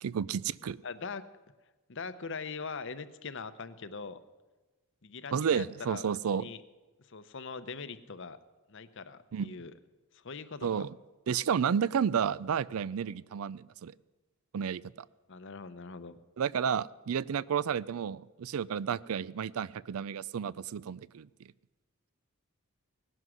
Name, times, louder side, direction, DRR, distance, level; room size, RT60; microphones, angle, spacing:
voice 1, 0.0-0.8 5.3-6.4 9.3-9.5 10.6-10.9 11.3-13.9 14.5-14.9 16.4-21.5, right 7 dB, 75° right, 20 dB, 0.4 m, -31 dB
voice 2, 0.8-1.3 1.9-4.2 5.0-6.6 7.0-8.4 8.7-9.7 10.1-10.9 15.3-16.2, left 4 dB, 55° left, 13 dB, 0.8 m, -42 dB
18.5 x 11.0 x 6.3 m, 1.2 s
head